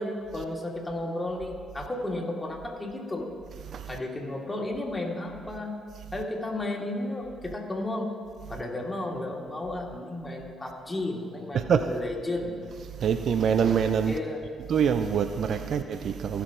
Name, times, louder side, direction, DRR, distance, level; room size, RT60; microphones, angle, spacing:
voice 1, 0.0-3.3 3.9-5.8 6.1-8.1 8.5-12.5 14.1-14.4, left 1 dB, 20° left, 2.3 m, -33 dB
voice 2, 11.5-11.9 12.9-14.1 14.7-16.4, right 7 dB, 55° right, 0.4 m, -25 dB
16.5 x 5.9 x 3.7 m
hypercardioid pair, 45°, 0 cm